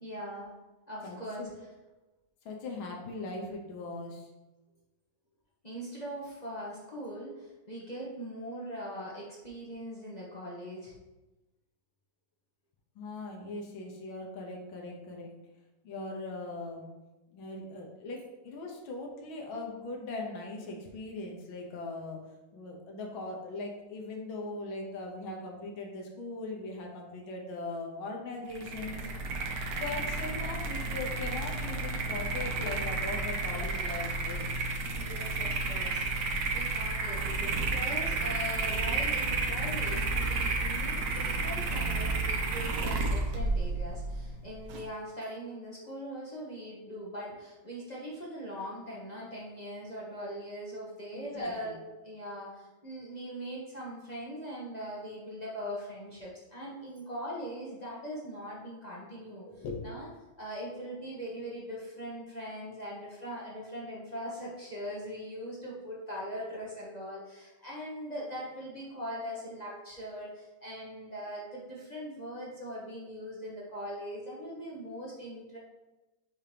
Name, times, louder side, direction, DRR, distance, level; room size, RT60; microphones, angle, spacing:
voice 1, 0.0-0.5 0.9-1.5 5.6-10.9 34.9-36.0 36.5-51.8 52.0-60.1 60.4-75.6, equal, 30° left, -6 dB, 0.8 m, -41 dB
voice 2, 1.0-1.5 2.5-4.3 13.0-15.3 15.8-16.9 17.3-22.2 22.5-29.1 29.8-34.5 51.1-51.8 59.4-59.9, left 2 dB, 80° left, 0 dB, 1.8 m, -40 dB
sound 1, 28.5-44.8, right 3 dB, 60° right, 1.0 m, -31 dB
6.5 x 2.9 x 5.0 m, 1.1 s
omnidirectional pair, 2.2 m